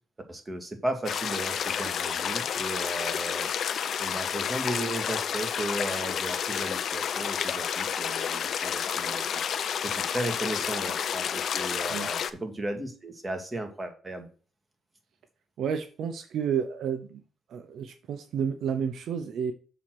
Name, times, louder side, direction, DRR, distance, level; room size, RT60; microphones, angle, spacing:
voice 1, 0.3-3.5 4.0-9.3 9.6-14.3, right 1 dB, 20° right, 4 dB, 2.0 m, -35 dB
sound 1, 1.0-12.3, left 8 dB, 60° left, 0.6 m, -30 dB
voice 2, 15.6-17.2 17.5-19.5, right 7 dB, 70° right, 8 dB, 0.8 m, -31 dB
7.1 x 4.3 x 6.2 m, 0.38 s
cardioid pair, 90°, 0 cm